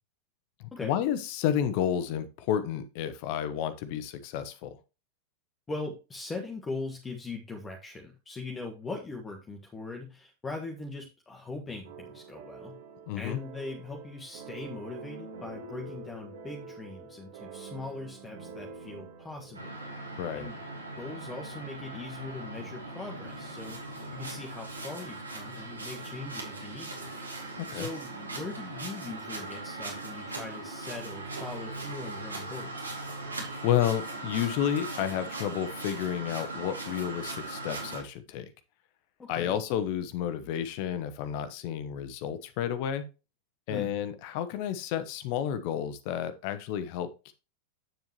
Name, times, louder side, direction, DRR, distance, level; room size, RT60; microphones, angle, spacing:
voice 1, 0.8-4.8 13.1-13.4 20.2-20.5 27.6-27.9 33.6-38.5 39.3-43.0 43.7-47.3, left 10 dB, 45° left, 12 dB, 0.9 m, -31 dB
voice 2, 5.7-12.8 13.1-19.7 20.3-20.6 21.0-27.2 27.7-33.0 39.2-39.6 43.7-43.9, left 3 dB, 15° left, 2 dB, 1.4 m, -41 dB
sound 1, 11.8-20.9, right 5 dB, 60° right, 2.0 m, -46 dB
sound 2, 19.5-38.0, right 2 dB, 80° right, 2.7 m, -39 dB
8.9 x 7.2 x 3.0 m, 0.30 s
figure-of-eight pair, 90°, 0 cm